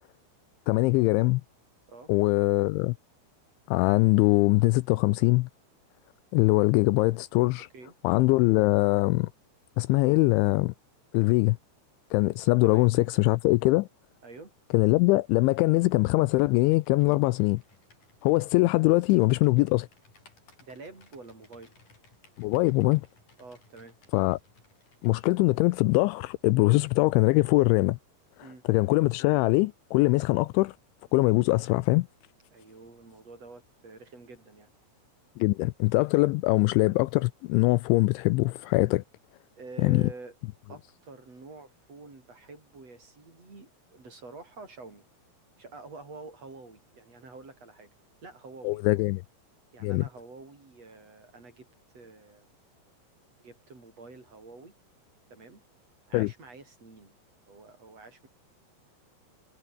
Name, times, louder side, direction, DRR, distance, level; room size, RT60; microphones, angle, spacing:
voice 1, 0.7-1.4 2.1-3.0 3.7-5.5 6.3-7.7 8.0-9.3 9.8-10.7 11.1-11.6 12.1-13.9 14.7-17.6 18.2-19.9 22.4-23.1 24.1-24.4 25.0-28.0 28.7-30.8 31.1-32.1 35.4-39.0 39.8-40.0 48.6-49.2 49.8-50.0 56.1-56.3, left 22 dB, 85° left, 2.7 m, -22 dB
voice 2, 14.2-14.5 20.6-21.7 23.4-24.0 28.4-28.6 32.5-34.7 39.6-40.4 40.7-45.0 45.6-47.9 48.2-49.0 49.7-51.7 51.9-52.5 53.4-54.7 55.3-55.6 56.1-57.1 57.5-58.3, right 3 dB, 30° right, 8.2 m, -47 dB
Computer keyboard, 16.1-25.2, left 3 dB, 40° left, 9.1 m, -61 dB
omnidirectional pair, 5.8 m